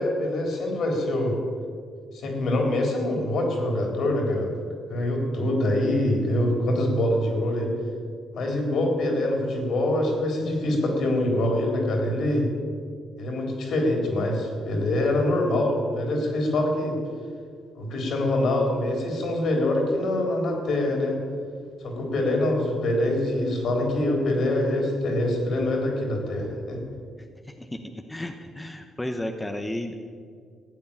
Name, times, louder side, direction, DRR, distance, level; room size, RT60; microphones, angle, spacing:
voice 1, 0.0-1.3 2.1-4.5 4.9-7.7 8.3-12.5 13.2-17.0 17.7-21.2 21.8-26.8, left 1 dB, 65° left, 2 dB, 3.9 m, -24 dB
voice 2, 28.1-29.9, left 1 dB, 10° left, 5 dB, 1.0 m, -32 dB
14.5 x 8.6 x 8.8 m, 2.1 s
cardioid pair, 90°, 0 cm